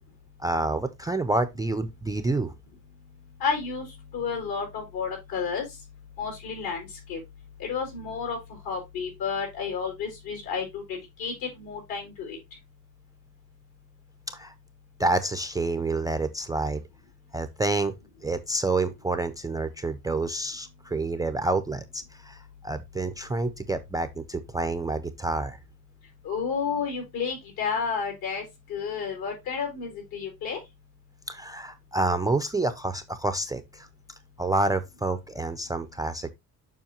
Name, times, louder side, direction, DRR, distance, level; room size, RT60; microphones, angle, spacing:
voice 1, 0.4-2.5 14.3-14.5 15.0-16.8 17.3-17.9 18.2-25.6 31.3-33.9 34.4-36.3, right 2 dB, 10° right, 0.3 m, -28 dB
voice 2, 3.4-3.9 4.1-5.6 6.2-7.2 7.6-8.4 8.6-12.4 26.2-30.6, left 6 dB, 80° left, 4.3 m, -31 dB
7.1 x 5.7 x 2.8 m
cardioid pair, 165°, 36 cm